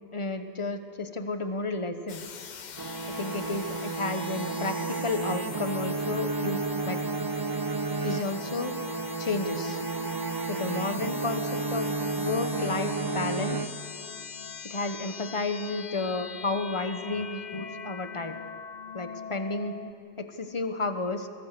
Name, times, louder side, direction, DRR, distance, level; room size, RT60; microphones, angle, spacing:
voice 1, 0.1-2.2 3.1-7.0 8.0-8.7 9.2-9.8 10.5-11.9 12.2-13.6 14.6-18.4 18.9-19.8 20.2-21.3, left 3 dB, 30° left, 8 dB, 1.2 m, -32 dB
sound 1, 2.1-19.9, left 6 dB, 50° left, 0.8 m, -42 dB
sound 2, 2.8-14.2, right 4 dB, 30° right, 0.4 m, -32 dB
22.5 x 20.5 x 6.8 m, 2.8 s
omnidirectional pair, 1.1 m